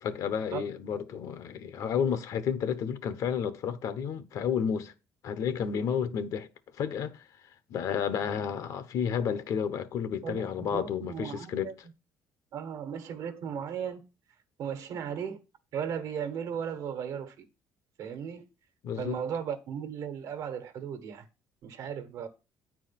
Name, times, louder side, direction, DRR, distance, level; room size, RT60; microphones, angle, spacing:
voice 1, 0.0-4.9 5.2-6.5 6.8-7.2 7.7-11.7 18.8-19.2, left 7 dB, 65° left, 1.0 m, -31 dB
voice 2, 10.2-11.7 12.5-14.0 14.6-15.4 15.7-17.4 18.0-18.4 19.0-21.2 21.6-22.3, right 8 dB, 65° right, 1.3 m, -36 dB
9.2 x 4.7 x 5.9 m
cardioid pair, 130°, 6 cm